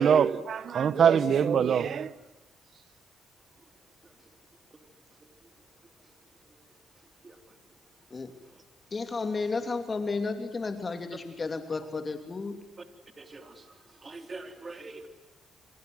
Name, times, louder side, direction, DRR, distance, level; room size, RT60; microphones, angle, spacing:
voice 1, 0.0-2.1, right 7 dB, 60° right, 1.4 m, -23 dB
voice 2, 8.9-12.6, left 4 dB, 30° left, 2.9 m, -32 dB
voice 3, 13.2-13.7 14.0-15.1, right 3 dB, 30° right, 4.0 m, -43 dB
28.0 x 27.0 x 7.9 m
cardioid pair, 90°, 0 cm